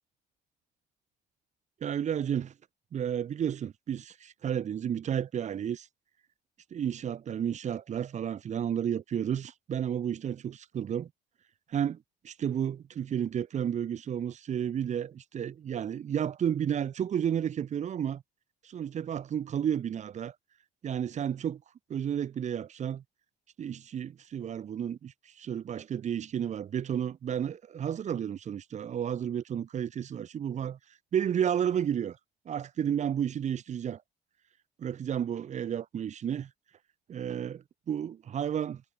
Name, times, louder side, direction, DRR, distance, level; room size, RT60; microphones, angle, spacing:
voice 1, 1.8-2.5 2.9-5.9 6.7-11.1 11.7-18.2 18.6-20.3 20.8-21.6 21.9-23.0 23.6-30.8 31.1-32.2 32.4-34.0 34.8-36.5 37.1-38.8, right 9 dB, 45° right, 1.1 m, -32 dB
cardioid pair, 110°, 17 cm